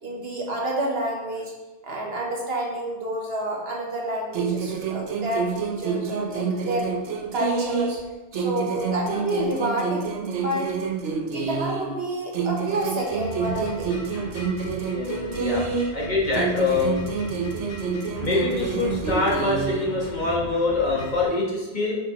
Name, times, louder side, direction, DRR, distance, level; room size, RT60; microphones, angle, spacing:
voice 1, 0.0-1.5 1.8-6.9 7.3-8.0 8.3-10.7 11.2-13.9, right 1 dB, 60° right, -1 dB, 1.4 m, -29 dB
sound 1, 4.3-8.0 8.3-12.0 12.3-16.0 16.3-20.0, right 5 dB, 90° right, 1.1 m, -28 dB
sound 2, 12.5-21.3, equal, 90° left, 2.3 m, -39 dB
voice 2, 14.9-17.0 18.2-22.0, left 3 dB, 40° left, -5 dB, 1.6 m, -25 dB
7.7 x 5.2 x 3.0 m, 1.1 s
omnidirectional pair, 1.2 m